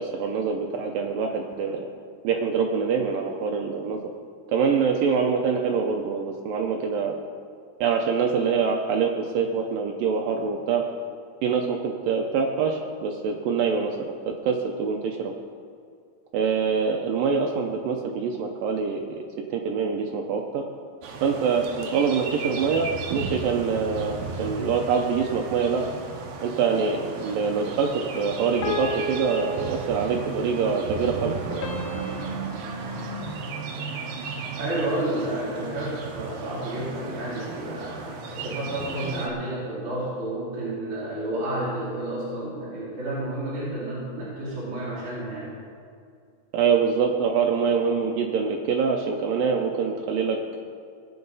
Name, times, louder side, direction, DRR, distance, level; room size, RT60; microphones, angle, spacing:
voice 1, 0.0-1.9 2.2-4.0 4.5-7.2 7.8-10.8 11.4-14.1 14.4-15.3 16.3-19.0 19.5-20.6 21.2-25.9 26.4-31.7 46.5-50.6, right 5 dB, 90° right, 2 dB, 1.9 m, -25 dB
sound 1, 21.0-39.3, right 4 dB, 70° right, 3.0 m, -35 dB
sound 2, 26.7-27.4 28.6-30.4 31.6-34.0, left 2 dB, 85° left, 3.2 m, -35 dB
voice 2, 34.6-45.5, right 1 dB, 45° right, -10 dB, 5.1 m, -31 dB
20.5 x 8.8 x 4.0 m, 2.3 s
omnidirectional pair, 5.0 m